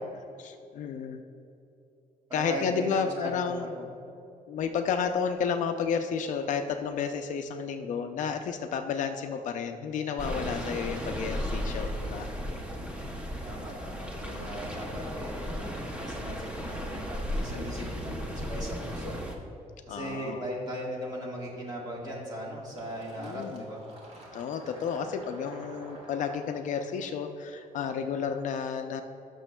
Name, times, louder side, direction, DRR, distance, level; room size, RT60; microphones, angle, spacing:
voice 1, 0.4-1.2 2.3-3.7 4.5-12.3 14.2-14.6 17.5-17.9 19.9-20.5 23.2-23.6 24.3-29.0, left 6 dB, 60° left, 7 dB, 0.5 m, -32 dB
voice 2, 2.3-3.8 13.4-19.2 19.9-23.8, right 1 dB, 25° right, -3 dB, 1.5 m, -38 dB
sound 1, 10.2-19.4, equal, 10° right, 0.6 m, -35 dB
Fill (with liquid), 22.8-28.2, right 1 dB, 45° right, 1.5 m, -49 dB
18.0 x 6.2 x 2.2 m, 2.7 s
cardioid pair, 180°, 15 cm